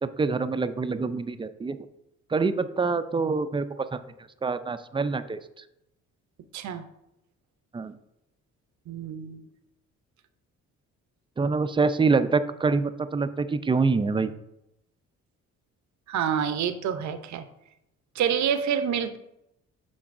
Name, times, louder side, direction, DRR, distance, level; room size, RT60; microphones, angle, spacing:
voice 1, 0.0-1.8 2.3-4.0 4.4-5.4 7.7-7.9 11.4-14.3, right 4 dB, 15° right, 11 dB, 0.4 m, -25 dB
voice 2, 6.5-6.8 8.9-9.4 16.1-17.4 18.2-19.2, right 8 dB, 70° right, 10 dB, 0.6 m, -27 dB
11.5 x 3.9 x 2.5 m, 0.85 s
cardioid pair, 90°, 30 cm